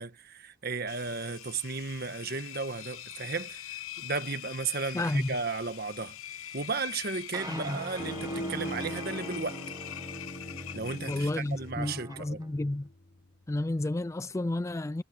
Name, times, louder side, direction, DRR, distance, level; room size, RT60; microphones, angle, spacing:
voice 1, 0.0-6.2 6.5-9.6 10.7-12.4, right 4 dB, 45° right, 1.5 m, -35 dB
Engine, 0.9-11.7, left 11 dB, 85° left, 0.9 m, -43 dB
voice 2, 4.9-5.4 7.5-7.8 11.1-12.9 13.5-15.0, left 2 dB, 15° left, 0.3 m, -31 dB
sound 1, 7.3-12.5, right 1 dB, 20° right, 1.3 m, -43 dB
sound 2, 8.0-13.4, equal, 45° left, 1.3 m, -42 dB
head